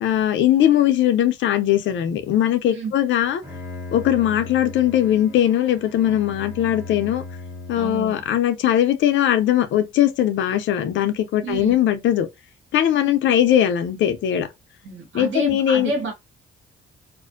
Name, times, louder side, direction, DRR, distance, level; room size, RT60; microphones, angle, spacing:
voice 1, 0.0-3.4 3.9-7.2 7.7-12.3 12.7-14.5 15.1-15.9, left 11 dB, 70° left, 0.5 m, -20 dB
Bowed string instrument, 3.2-8.3, left 3 dB, 15° right, 1.2 m, -37 dB
voice 2, 7.7-8.2 11.4-11.7 14.8-16.1, right 3 dB, 75° right, 1.3 m, -29 dB
2.4 x 2.1 x 2.5 m
cardioid pair, 90°, 20 cm